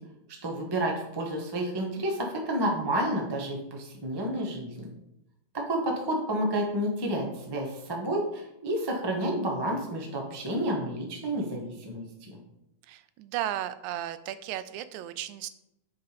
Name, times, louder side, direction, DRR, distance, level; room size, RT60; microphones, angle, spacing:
voice 1, 0.4-4.9 5.5-12.4, right 1 dB, 30° right, 0 dB, 0.4 m, -30 dB
voice 2, 12.9-15.5, right 12 dB, 90° right, 13 dB, 2.0 m, -35 dB
8.1 x 5.2 x 5.1 m, 0.84 s
omnidirectional pair, 3.3 m